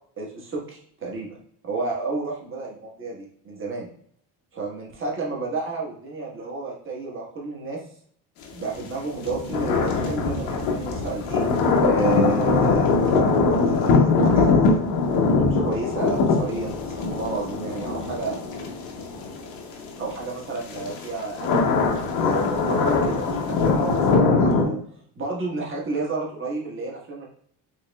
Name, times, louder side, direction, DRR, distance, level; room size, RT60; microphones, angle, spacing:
voice 1, 0.2-1.4 1.6-3.9 4.5-7.8 8.5-11.4 11.8-14.8 15.3-18.4 20.0-21.8 22.2-24.8 25.2-27.3, right 3 dB, 30° right, -2 dB, 1.3 m, -31 dB
sound 1, 8.6-20.1 20.6-24.6, left 4 dB, 85° left, 0.9 m, -22 dB
4.7 x 3.1 x 2.2 m, 0.63 s
cardioid pair, 105°, 42 cm